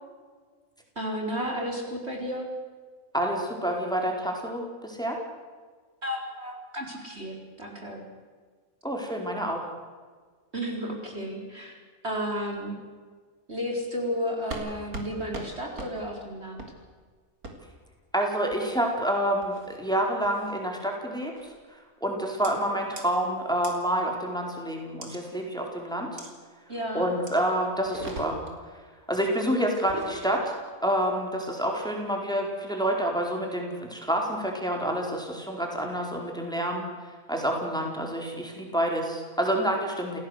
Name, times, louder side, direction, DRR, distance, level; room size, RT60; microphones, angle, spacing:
voice 1, 1.0-2.5 6.0-8.0 10.5-12.7 13.5-16.6 26.7-27.1, equal, 45° right, 1 dB, 4.8 m, -33 dB
voice 2, 3.1-5.2 8.8-9.6 18.1-26.2 26.9-28.4 29.1-40.2, right 1 dB, 5° left, 1 dB, 4.6 m, -28 dB
sound 1, 14.5-14.7 14.9-15.1 15.3-15.5 15.8-15.9 16.6-16.7 17.4-17.5 18.5-18.9 19.4-19.8 20.2-20.5 21.4-21.6 22.4-22.5 23.0-23.1 23.6-23.7 25.0-25.2 26.2-26.3 27.3-27.4 27.8-28.6 29.7-30.1, right 2 dB, 85° right, 4.0 m, -39 dB
29.0 x 17.5 x 8.2 m, 1.5 s
omnidirectional pair, 1.5 m